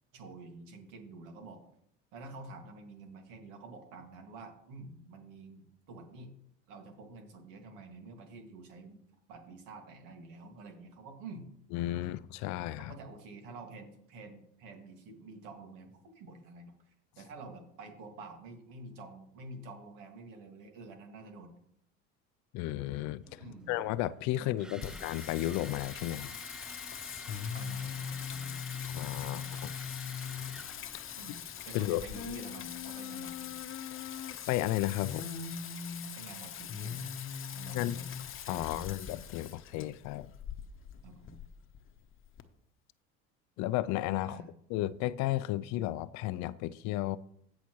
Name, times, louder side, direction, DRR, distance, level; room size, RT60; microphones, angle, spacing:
voice 1, 0.1-1.6 2.1-6.4 6.7-9.0 9.3-11.4 12.8-21.5 23.4-23.9 24.3-25.0 27.5-28.7 29.2-29.8 31.2-33.6 36.2-37.2 37.5-38.1 38.5-38.9 41.0-41.4 44.2-44.5, right 3 dB, 70° right, 2.1 m, -49 dB
voice 2, 11.7-12.9 22.5-26.3 28.9-29.7 31.7-32.0 34.5-35.2 37.7-38.0 38.5-40.3 43.6-44.4 44.7-47.2, left 15 dB, 60° left, 0.5 m, -33 dB
sound 1, 23.2-32.0, equal, ahead, 0.3 m, -50 dB
Singing, 24.8-42.4, left 8 dB, 40° left, 0.9 m, -41 dB
16.5 x 5.8 x 3.1 m
hypercardioid pair, 75°, 33 cm